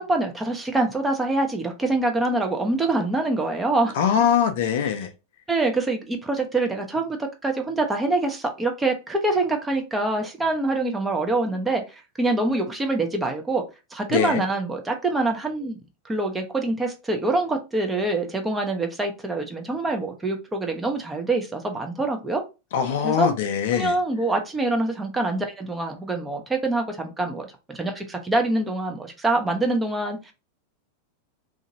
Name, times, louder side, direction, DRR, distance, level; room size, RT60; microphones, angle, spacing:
voice 1, 0.0-4.0 5.5-11.8 12.2-13.6 13.9-15.8 16.1-22.4 23.0-23.3 23.7-30.3, right 2 dB, 10° right, 0.6 m, -25 dB
voice 2, 4.0-5.1 14.1-14.4 22.7-23.9, left 8 dB, 55° left, 0.5 m, -22 dB
2.8 x 2.5 x 2.6 m
figure-of-eight pair, 90°, 0 cm